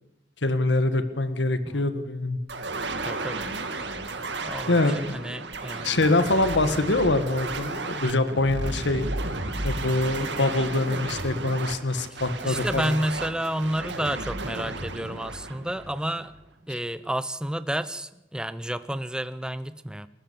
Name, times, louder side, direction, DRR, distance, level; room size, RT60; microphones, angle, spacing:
voice 1, 0.4-2.4 4.7-5.1 5.8-9.1 9.6-12.9 16.7-16.8, left 2 dB, 80° left, 10 dB, 1.7 m, -24 dB
sound 1, 2.5-16.4, right 2 dB, 75° right, 2.0 m, -33 dB
voice 2, 3.0-3.5 3.7-3.9 4.4-5.9 12.1-16.3 16.7-20.1, right 1 dB, 5° right, 14 dB, 0.6 m, -31 dB
29.0 x 13.5 x 7.0 m, 0.94 s
head